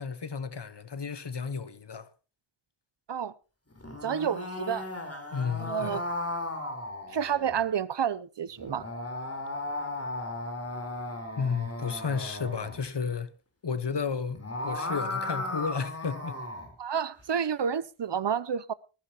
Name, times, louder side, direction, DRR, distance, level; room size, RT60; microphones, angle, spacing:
voice 1, 0.0-2.1 5.3-6.0 11.4-13.3 13.6-16.4, left 5 dB, 55° left, 1.2 m, -32 dB
sound 1, 3.7-7.6 8.6-12.8 14.2-16.7, left 2 dB, 30° left, 4.0 m, -36 dB
voice 2, 4.0-4.9 5.6-6.0 7.1-8.9 16.8-18.7, right 8 dB, 60° right, 0.7 m, -30 dB
20.0 x 15.0 x 2.9 m
wide cardioid pair, 60°, 48 cm